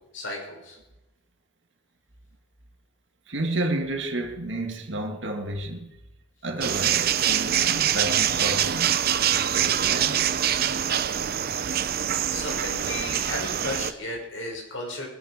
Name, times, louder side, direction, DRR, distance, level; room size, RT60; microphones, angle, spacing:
voice 1, 0.1-0.8 11.5-11.7 12.3-15.1, left 1 dB, 80° left, 6.3 m, -34 dB
voice 2, 3.3-6.0 6.4-9.0 9.3-10.3, right 1 dB, 65° right, 2.1 m, -31 dB
sound 1, 6.6-13.9, right 10 dB, 50° right, 0.6 m, -24 dB
24.0 x 10.5 x 5.1 m
head